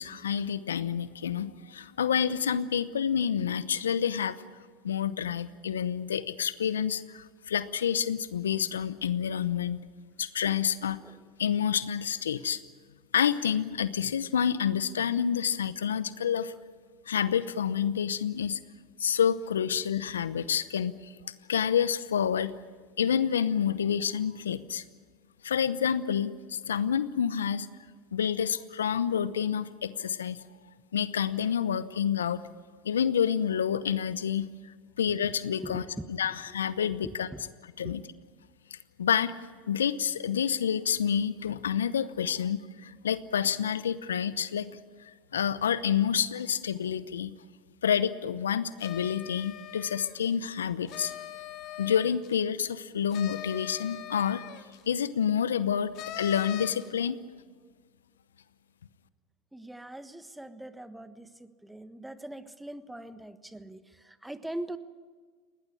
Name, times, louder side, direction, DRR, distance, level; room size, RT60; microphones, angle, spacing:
voice 1, 0.0-4.4 4.8-9.8 10.2-11.0 11.4-12.6 13.1-16.5 17.1-18.6 19.0-21.1 21.5-22.5 23.0-24.8 25.4-27.7 28.1-30.4 30.9-32.4 32.8-34.5 35.0-35.8 36.2-37.3 37.8-38.0 38.7-39.3 39.7-44.7 45.3-47.4 47.8-51.1 51.8-54.4 54.9-57.2, left 8 dB, 85° left, 16 dB, 0.8 m, -28 dB
voice 2, 35.6-36.6 36.9-37.5 37.8-37.9 59.5-64.8, right 1 dB, 5° right, 12 dB, 1.3 m, -42 dB
sound 1, 48.8-50.3 50.9-52.4 53.1-54.8 55.9-56.9, left 12 dB, 55° left, 2.2 m, -41 dB
21.0 x 18.0 x 9.8 m, 1.6 s
hypercardioid pair, 85°, 0 cm